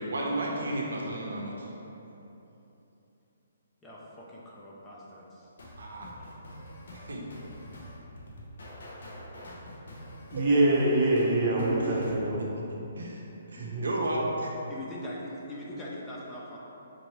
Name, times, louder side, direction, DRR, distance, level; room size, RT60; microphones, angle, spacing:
voice 1, 0.0-1.7 5.8-6.1 6.9-7.2 11.8-12.5 13.0-13.2 13.5-14.5, right 1 dB, 85° right, -2 dB, 0.7 m, -33 dB
voice 2, 3.8-5.5 6.2-6.3 14.7-16.6, left 1 dB, 10° left, -6 dB, 0.4 m, -42 dB
sound 1, 5.6-12.2, left 1 dB, 70° left, 0.8 m, -46 dB
voice 3, 10.3-12.4 13.6-13.9, right 1 dB, 30° right, -5 dB, 0.7 m, -24 dB
4.4 x 2.6 x 3.0 m, 3.0 s
hypercardioid pair, 165°, 0 cm